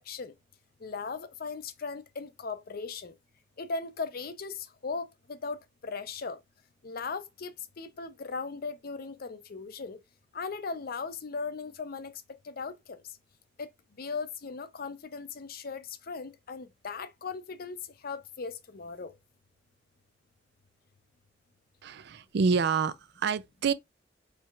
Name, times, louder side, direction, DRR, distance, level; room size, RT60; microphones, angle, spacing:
voice 1, 0.8-3.1 3.6-5.6 5.8-6.4 6.8-10.0 10.3-12.1 12.4-13.0 13.6-13.7 14.0-19.1, left 4 dB, 50° left, 0.5 m, -38 dB
voice 2, 21.8-23.7, right 5 dB, 60° right, 0.4 m, -27 dB
4.6 x 4.2 x 2.3 m
head